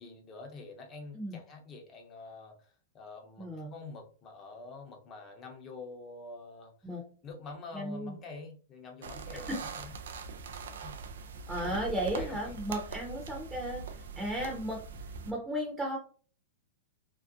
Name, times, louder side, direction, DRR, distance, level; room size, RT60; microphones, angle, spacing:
voice 1, 0.0-6.9 7.2-9.9 10.8-11.0 11.6-12.6, left 3 dB, 30° left, 2 dB, 0.8 m, -47 dB
voice 2, 3.4-3.7 6.8-7.0 7.7-8.1 9.5-9.6 11.5-14.8 15.3-16.0, equal, 5° right, -2 dB, 0.8 m, -35 dB
sound 1, 9.0-15.3, right 5 dB, 75° right, 0.4 m, -42 dB
2.6 x 2.1 x 2.5 m, 0.41 s
hypercardioid pair, 120°, 0 cm